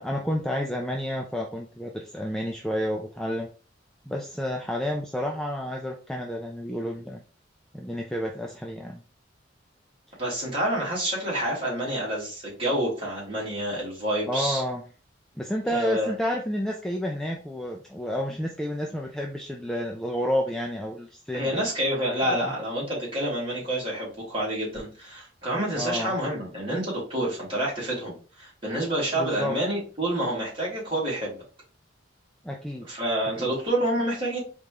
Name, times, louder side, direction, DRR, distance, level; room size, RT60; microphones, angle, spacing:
voice 1, 0.0-3.5 4.1-7.2 7.7-9.0 14.3-14.8 15.4-21.7 22.3-22.5 25.8-26.2 29.1-29.5 32.4-32.9 33.4-33.5, equal, 5° left, 0 dB, 0.4 m, -30 dB
voice 2, 10.2-14.6 15.7-16.1 21.3-31.4 32.8-34.4, right 1 dB, 25° right, -5 dB, 2.3 m, -28 dB
3.9 x 3.7 x 2.9 m, 0.36 s
head